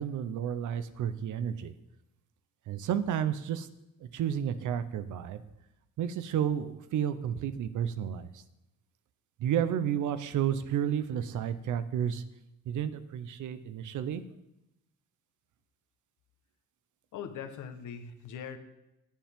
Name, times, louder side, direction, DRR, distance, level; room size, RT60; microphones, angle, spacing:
voice 1, 0.0-1.7 2.7-3.7 4.0-5.4 6.0-8.4 9.4-12.2 12.7-14.2, right 9 dB, 75° right, 12 dB, 0.9 m, -31 dB
voice 2, 17.1-18.6, left 7 dB, 80° left, 7 dB, 1.3 m, -41 dB
19.0 x 7.4 x 3.7 m, 0.91 s
cardioid pair, 90°, 30 cm